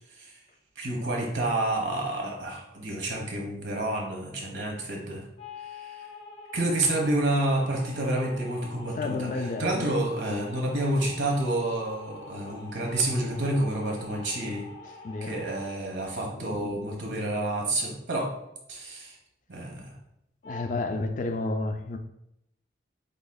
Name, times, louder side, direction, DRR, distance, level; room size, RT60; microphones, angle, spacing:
voice 1, 0.8-5.2 5.6-6.1 6.5-9.3 9.6-14.7 15.2-18.3 18.7-19.2 19.5-19.9, right 1 dB, 80° right, 1.3 m, -29 dB
sound 1, 5.4-15.7 20.4-20.6, left 3 dB, 85° left, 0.9 m, -46 dB
voice 2, 8.9-9.9 15.0-15.4 16.3-16.8 20.4-22.0, left 2 dB, 45° left, 0.4 m, -31 dB
8.1 x 2.9 x 2.3 m
head